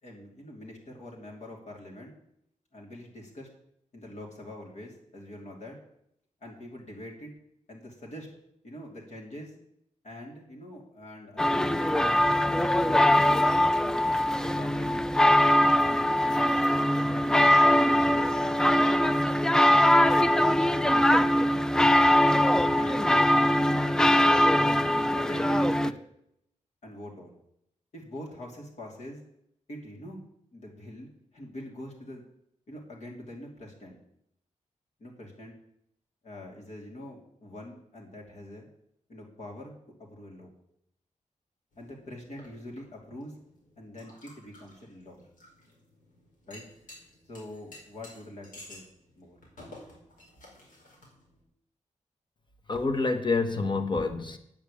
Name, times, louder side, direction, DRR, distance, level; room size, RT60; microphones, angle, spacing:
voice 1, 0.0-2.1 2.7-3.5 3.9-5.8 6.4-7.3 7.7-8.3 8.6-9.5 10.0-13.7 14.2-15.1 15.8-16.6 17.0-19.3 20.3-21.7 22.6-24.5 24.9-26.0 26.8-27.3 27.9-29.2 29.7-30.2 30.5-31.1 31.3-32.2 32.7-34.0 35.0-35.5 36.2-38.7 39.1-39.7 40.0-40.5 41.8-43.3 43.8-45.2 46.5-46.6 47.3-48.8 49.2-49.4, left 1 dB, 60° left, -1 dB, 2.9 m, -44 dB
sound 1, 11.4-25.9, left 1 dB, 5° left, 0.3 m, -22 dB
sound 2, 41.7-51.4, left 1 dB, 85° left, 4.4 m, -53 dB
voice 2, 52.7-54.4, left 3 dB, 35° left, 9 dB, 1.1 m, -27 dB
9.1 x 6.9 x 8.5 m, 0.74 s
wide cardioid pair, 160°, 13 cm